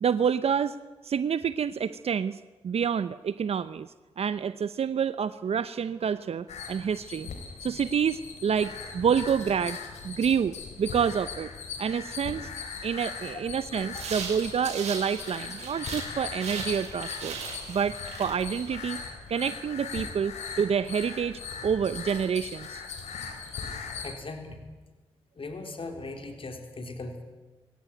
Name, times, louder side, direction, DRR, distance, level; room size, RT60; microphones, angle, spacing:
voice 1, 0.0-0.8 1.0-3.9 4.2-7.3 7.6-9.8 10.0-11.5 11.8-12.5 12.8-17.4 17.7-19.0 19.3-22.8, right 7 dB, 65° right, 14 dB, 0.7 m, -28 dB
sound 1, 6.5-24.1, left 5 dB, 85° left, 3.7 m, -39 dB
sound 2, 13.9-16.1 16.4-19.0, right 5 dB, 85° right, 5.2 m, -39 dB
voice 2, 24.0-24.7 25.4-27.2, left 2 dB, 55° left, 5 dB, 4.0 m, -39 dB
23.0 x 17.5 x 9.3 m, 1.2 s
supercardioid pair, 45°, 11 cm